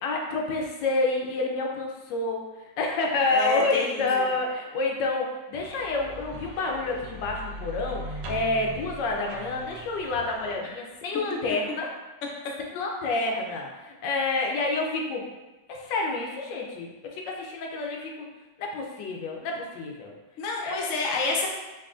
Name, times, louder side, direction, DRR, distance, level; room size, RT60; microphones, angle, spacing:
voice 1, 0.0-2.4 2.8-11.9 12.7-15.2 15.7-18.3 18.6-20.1 20.6-20.9, left 3 dB, 85° left, 0 dB, 1.3 m, -28 dB
voice 2, 3.3-4.3 10.6-10.8 20.4-21.5, left 3 dB, 65° left, -1 dB, 0.8 m, -29 dB
sound 1, 5.5-10.6, equal, 85° right, 1.3 m, -40 dB
4.6 x 2.9 x 2.4 m, 1.1 s
omnidirectional pair, 1.9 m